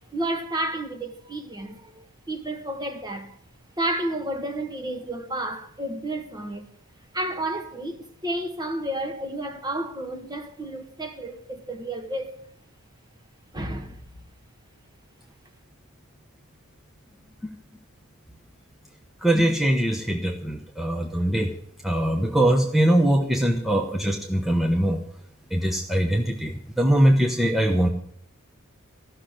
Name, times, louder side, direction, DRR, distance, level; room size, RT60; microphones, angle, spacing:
voice 1, 0.1-3.3 3.8-6.6 7.1-12.3 13.5-14.0, right 1 dB, 20° right, 1.3 m, -31 dB
voice 2, 19.2-21.5 21.8-25.0 25.5-27.9, right 1 dB, ahead, 0.9 m, -22 dB
14.5 x 6.5 x 10.0 m
head